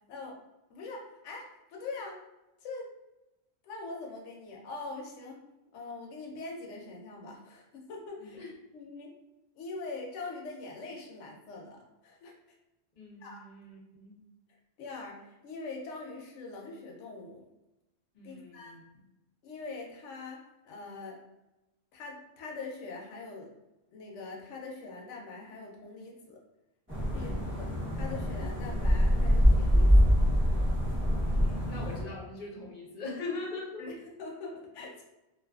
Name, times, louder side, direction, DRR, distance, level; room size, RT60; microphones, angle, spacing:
voice 1, 0.7-2.2 2.6-2.9 3.6-5.4 5.7-8.4 8.7-9.1 9.5-12.6 13.2-13.4 14.5-17.5 18.2-18.8 19.4-20.4 20.6-21.2 21.9-23.5 23.9-26.4 27.1-30.1 33.8-35.0, left 3 dB, 80° left, -1 dB, 0.9 m, -43 dB
voice 2, 8.2-8.5 13.0-14.2 18.1-18.8 27.1-27.5 31.3-33.9, left 3 dB, 50° left, -3 dB, 0.7 m, -41 dB
sound 1, 26.9-32.0, equal, 15° right, 0.6 m, -25 dB
2.5 x 2.4 x 2.3 m, 0.97 s
omnidirectional pair, 1.2 m